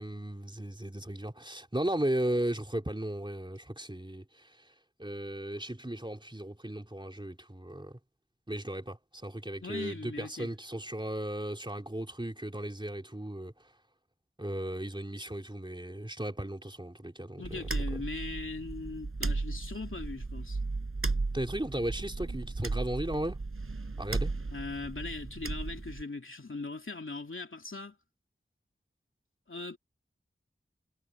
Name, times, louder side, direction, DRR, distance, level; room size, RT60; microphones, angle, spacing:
voice 1, 0.0-4.6 5.0-8.0 8.5-13.5 14.4-17.8 21.3-23.4 24.0-24.3, right 1 dB, 20° right, 3.3 m, -36 dB
voice 2, 9.6-10.5 17.4-20.6 24.5-28.0 29.5-29.8, left 3 dB, 70° left, 2.7 m, -40 dB
sound 1, 17.4-26.0, right 3 dB, 90° right, 5.2 m, -35 dB
wide cardioid pair, 45°, 21 cm